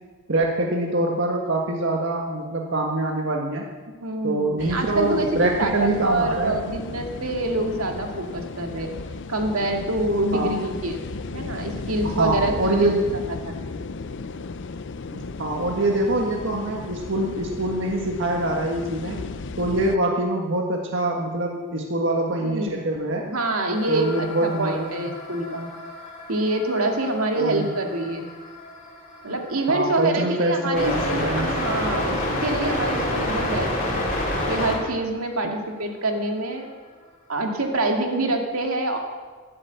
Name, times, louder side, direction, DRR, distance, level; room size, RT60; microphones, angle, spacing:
voice 1, 0.3-3.6 4.2-6.5 10.3-10.5 12.0-13.2 15.1-19.2 19.6-23.3 23.9-25.1 27.4-27.7 29.7-31.5, right 2 dB, 60° right, 0 dB, 1.5 m, -24 dB
voice 2, 4.0-8.9 9.3-11.1 11.3-12.9 13.3-13.8 22.4-22.8 23.3-25.7 26.3-28.3 29.2-34.1 34.5-36.7 37.3-39.0, right 2 dB, 80° right, 3 dB, 2.2 m, -26 dB
sound 1, 4.6-20.0, left 3 dB, 55° left, 0.6 m, -35 dB
sound 2, 23.7-34.7, left 1 dB, 40° left, 4.3 m, -29 dB
12.0 x 12.0 x 8.2 m, 1.4 s
head